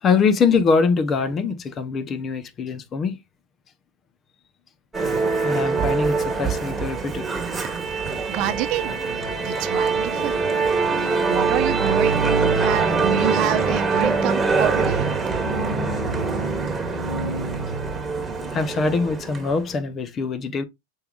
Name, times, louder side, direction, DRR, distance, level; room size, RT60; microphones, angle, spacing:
voice 1, 0.0-3.2 5.4-7.3 18.5-20.6, left 5 dB, 25° left, 0.8 m, -23 dB
Musical instrument, 4.9-19.6, right 4 dB, 10° right, 1.5 m, -23 dB
voice 2, 8.0-10.9 11.3-15.1, right 12 dB, 50° right, 0.8 m, -28 dB
6.2 x 3.4 x 2.4 m
hypercardioid pair, 115°, 0 cm